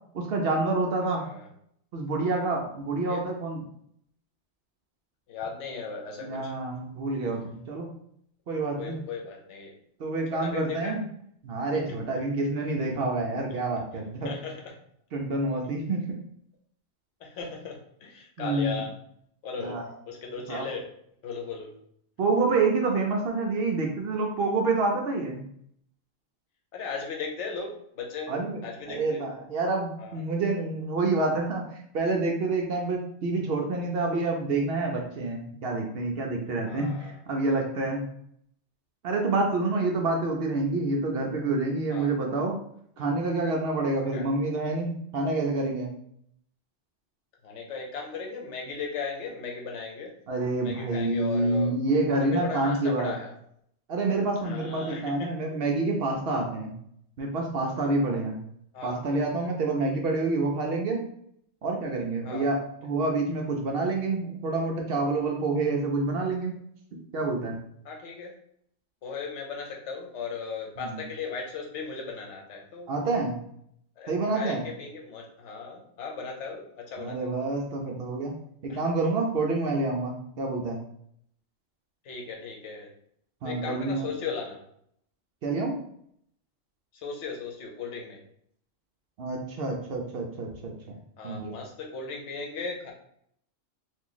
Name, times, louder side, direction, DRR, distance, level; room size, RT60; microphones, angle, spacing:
voice 1, 0.1-1.3 1.9-3.6 6.2-7.9 8.5-9.0 10.0-11.0 11.4-14.3 15.1-16.2 18.4-18.8 19.6-19.9 20.5-20.7 22.2-25.4 28.3-28.6 28.9-38.0 39.0-42.6 43.0-45.9 50.3-53.1 53.9-56.7 57.2-58.4 58.8-61.0 61.6-66.6 67.1-67.6 70.8-71.0 72.9-73.4 74.1-74.6 77.0-78.4 78.6-80.8 83.4-84.1 85.4-85.8 89.2-91.0 91.2-91.5, right 3 dB, 60° right, 1 dB, 0.7 m, -28 dB
voice 2, 1.2-1.5 3.1-3.2 5.3-6.5 8.8-9.7 10.3-11.0 11.9-12.1 14.2-14.7 17.2-18.9 19.4-19.8 20.1-20.9 21.2-21.7 26.7-28.3 28.6-29.2 30.0-30.2 36.7-37.2 41.9-42.1 44.1-44.2 47.4-50.1 50.6-51.8 52.2-53.3 54.4-55.4 56.3-56.4 58.7-59.0 62.2-62.5 67.8-68.3 69.0-72.9 74.0-77.4 78.7-78.8 82.0-82.9 83.4-84.6 86.9-88.2 91.2-92.9, left 5 dB, 70° left, 0 dB, 1.0 m, -37 dB
2.9 x 2.5 x 3.8 m, 0.68 s
omnidirectional pair, 1.3 m